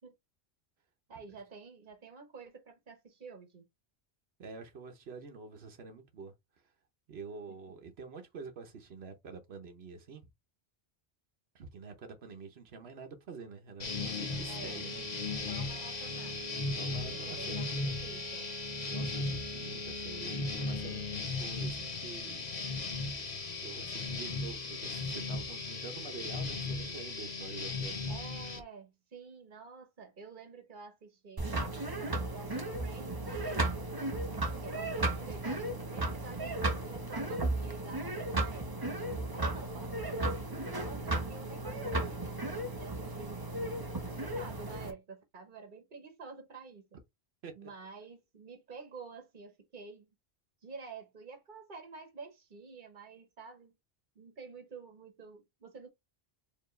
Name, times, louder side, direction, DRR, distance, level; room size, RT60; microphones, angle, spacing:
voice 1, 1.1-3.7 14.5-14.9 15.5-16.4 17.1-18.5 28.1-31.7 32.3-34.0 34.6-34.9 35.2-36.5 36.8-38.9 39.3-43.4 44.1-47.0 47.5-50.1 50.6-53.7 54.1-55.9, right 4 dB, 50° right, 1.2 m, -49 dB
voice 2, 4.4-6.3 6.6-6.7 7.1-10.3 11.5-15.5 16.8-17.6 18.8-22.5 23.6-28.0 47.4-47.7, right 5 dB, 85° right, 1.1 m, -47 dB
sound 1, 13.8-28.6, left 3 dB, 45° left, 1.0 m, -37 dB
sound 2, 31.4-44.9, right 2 dB, 25° right, 0.7 m, -35 dB
4.6 x 2.9 x 3.1 m
omnidirectional pair, 1.0 m